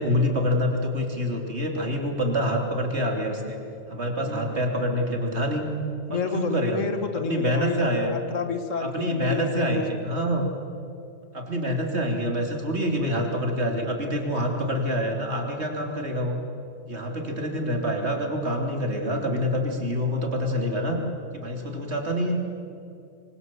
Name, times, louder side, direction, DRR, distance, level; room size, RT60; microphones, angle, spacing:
voice 1, 0.0-3.6 3.9-5.7 6.1-6.9 7.2-8.2 8.8-10.5 11.3-16.4 16.9-21.0 21.3-22.4, equal, 60° right, 2 dB, 3.5 m, -26 dB
voice 2, 4.2-4.7 6.1-9.8, left 5 dB, 80° left, 7 dB, 2.1 m, -30 dB
25.5 x 24.5 x 7.6 m, 2.6 s
omnidirectional pair, 1.3 m